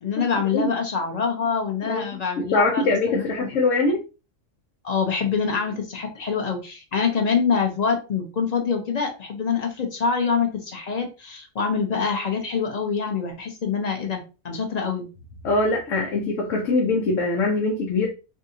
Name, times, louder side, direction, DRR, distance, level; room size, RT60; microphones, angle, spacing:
voice 1, 0.0-3.6 3.9-4.0 4.8-15.1, left 5 dB, 40° left, 0.7 m, -25 dB
voice 2, 2.4-4.0 15.4-18.1, left 3 dB, 85° left, 1.1 m, -22 dB
3.5 x 2.7 x 2.7 m
omnidirectional pair, 1.3 m